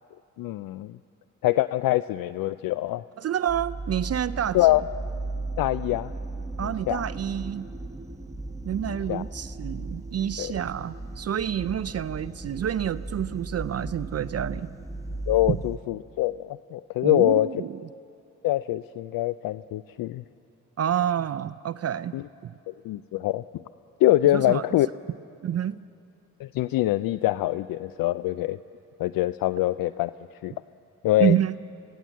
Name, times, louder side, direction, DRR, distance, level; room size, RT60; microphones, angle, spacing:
voice 1, 0.4-1.0 1.4-3.0 4.5-4.8 5.6-6.1 6.6-7.0 9.1-9.2 10.4-10.5 15.3-17.5 18.4-20.2 22.1-22.2 22.7-23.4 24.0-24.9 26.4-28.6 29.0-30.1 30.4-30.5 31.0-31.4, left 15 dB, 70° left, 15 dB, 0.5 m, -24 dB
voice 2, 3.2-4.6 6.6-7.7 8.6-14.7 15.5-15.6 17.0-17.8 20.8-22.2 22.4-22.6 24.2-24.6 25.4-25.8 31.2-31.6, right 10 dB, 45° right, 15 dB, 0.6 m, -28 dB
sound 1, 3.5-15.8, right 2 dB, 10° right, 1.1 m, -36 dB
26.0 x 17.0 x 7.4 m, 2.5 s
supercardioid pair, 55°, 36 cm